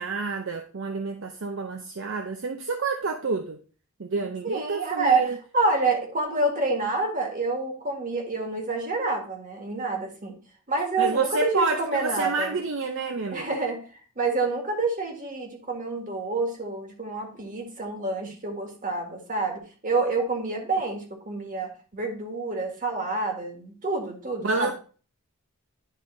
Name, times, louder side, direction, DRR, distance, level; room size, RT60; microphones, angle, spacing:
voice 1, 0.0-3.6 4.0-5.4 11.0-13.6 24.4-24.7, right 3 dB, 55° right, 5 dB, 0.6 m, -29 dB
voice 2, 4.4-5.3 5.5-10.4 10.7-12.6 13.3-13.8 14.2-24.7, right 3 dB, 35° right, 2 dB, 1.7 m, -28 dB
10.5 x 3.6 x 3.8 m, 0.38 s
head